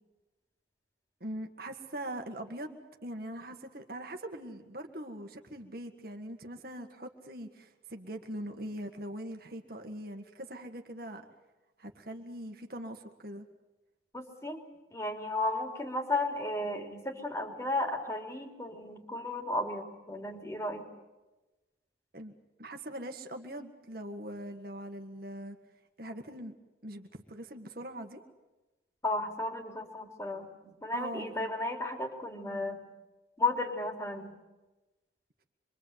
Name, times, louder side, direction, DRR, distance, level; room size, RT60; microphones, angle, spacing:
voice 1, 1.2-11.2 11.8-13.5 22.1-22.3 22.6-25.6 26.0-26.5 26.8-28.2 30.9-31.5 32.4-32.7, right 1 dB, 55° right, 4 dB, 1.8 m, -42 dB
voice 2, 14.1-14.6 14.9-20.9 29.0-32.8 33.4-34.3, left 2 dB, 15° left, 3 dB, 3.3 m, -34 dB
26.0 x 24.0 x 8.2 m, 1.1 s
head